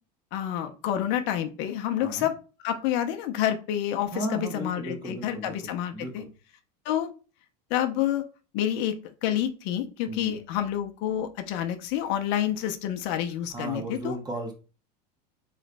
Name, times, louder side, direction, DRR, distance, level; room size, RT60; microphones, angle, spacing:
voice 1, 0.3-2.3 2.6-6.2 6.8-7.1 7.7-8.2 8.5-9.0 9.2-14.2, left 11 dB, 60° left, 7 dB, 0.6 m, -28 dB
voice 2, 1.9-2.3 4.1-6.3 10.1-10.4 13.5-14.5, right 1 dB, 20° right, 3 dB, 1.2 m, -35 dB
3.2 x 3.1 x 3.9 m, 0.35 s
supercardioid pair, 110°, 21 cm